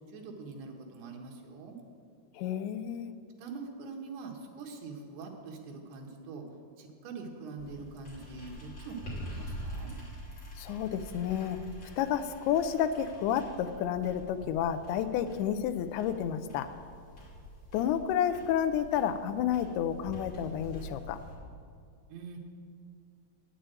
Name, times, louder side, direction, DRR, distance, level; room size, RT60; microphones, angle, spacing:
voice 1, 0.1-1.8 3.4-6.4 6.8-9.9 22.1-22.4, right 4 dB, 90° right, 1 dB, 3.4 m, -44 dB
voice 2, 2.4-3.1 10.6-11.6 12.0-16.7 17.7-21.2, left 9 dB, 90° left, 9 dB, 2.6 m, -30 dB
sound 1, 7.6-21.3, equal, 35° left, 3.3 m, -46 dB
8.9 x 8.3 x 9.0 m, 2.3 s
omnidirectional pair, 4.5 m